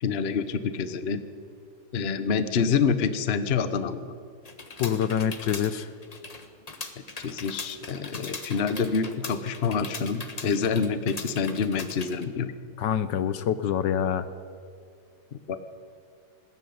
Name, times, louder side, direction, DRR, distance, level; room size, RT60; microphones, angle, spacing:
voice 1, 0.0-1.2 1.9-4.1 7.2-12.5 15.3-15.6, left 6 dB, 40° left, 11 dB, 1.1 m, -27 dB
sound 1, 4.4-12.2, left 3 dB, 20° left, 1.3 m, -40 dB
voice 2, 4.8-5.9 12.8-14.3, left 9 dB, 70° left, 13 dB, 1.4 m, -26 dB
20.0 x 16.0 x 9.5 m, 2.2 s
omnidirectional pair, 2.1 m